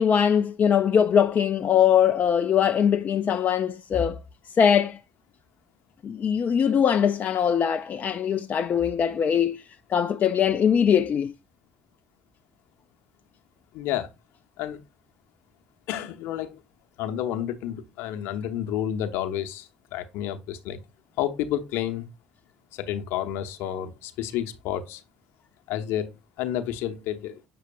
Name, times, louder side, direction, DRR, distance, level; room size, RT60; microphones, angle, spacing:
voice 1, 0.0-4.2 4.6-5.0 6.0-9.6 9.9-11.3, left 8 dB, 40° left, 0.4 m, -21 dB
voice 2, 13.7-14.1 14.6-14.8 15.9-16.6 17.0-20.8 21.2-22.1 22.7-25.0 25.7-26.1 26.4-27.4, left 11 dB, 60° left, 0.9 m, -30 dB
7.6 x 6.6 x 2.3 m
figure-of-eight pair, 45°, 4 cm